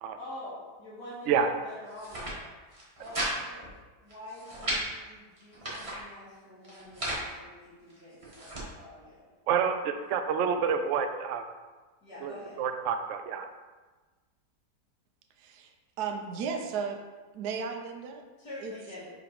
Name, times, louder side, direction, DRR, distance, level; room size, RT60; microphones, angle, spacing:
voice 1, 0.2-9.3 12.0-12.6 18.4-19.1, left 1 dB, 70° left, -12 dB, 2.3 m, -46 dB
sound 1, 1.9-2.4 2.7-3.3 3.6-3.7 4.1-4.8 5.4-6.0 6.6-7.2 7.9-8.7, right 1 dB, 20° right, 1.4 m, -35 dB
voice 2, 9.5-11.4 12.2-13.5, right 7 dB, 90° right, 7 dB, 0.6 m, -28 dB
voice 3, 15.4-17.0 17.3-18.2 18.6-18.7, right 6 dB, 70° right, 3 dB, 1.2 m, -35 dB
4.9 x 4.6 x 5.1 m, 1.3 s
omnidirectional pair, 1.8 m